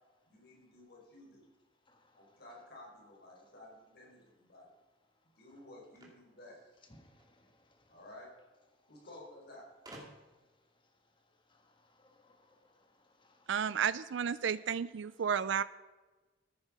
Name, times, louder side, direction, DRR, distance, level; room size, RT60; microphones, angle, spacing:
voice 1, 0.3-1.4 2.2-4.7 5.4-6.7 7.9-8.3 8.9-9.7, left 1 dB, 55° left, -2 dB, 4.3 m, -54 dB
sound 1, 5.9-7.3 8.4-8.5 8.8-8.9 9.8-10.5, right 1 dB, 20° right, 2.5 m, -53 dB
voice 2, 6.9-7.5 11.5-12.7 13.2-13.5, left 1 dB, 25° left, 4 dB, 1.7 m, -64 dB
voice 3, 13.5-15.6, right 7 dB, 70° right, 16 dB, 0.4 m, -32 dB
15.0 x 9.7 x 4.9 m, 1.2 s
head